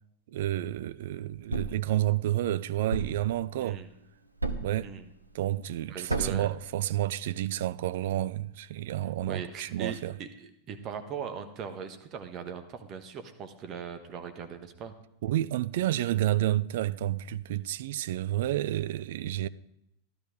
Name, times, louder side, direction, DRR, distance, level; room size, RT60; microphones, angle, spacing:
voice 1, 0.3-3.8 4.6-4.9 5.3-10.1 15.2-19.5, right 13 dB, 55° right, 0.4 m, -30 dB
Thump thud, 1.5-1.9 2.9-3.3 4.4-4.8 6.1-6.5, right 3 dB, 85° right, 0.8 m, -31 dB
voice 2, 5.9-6.5 9.3-14.9, right 7 dB, 35° right, 1.2 m, -40 dB
14.0 x 12.5 x 3.7 m
figure-of-eight pair, 90°, 0 cm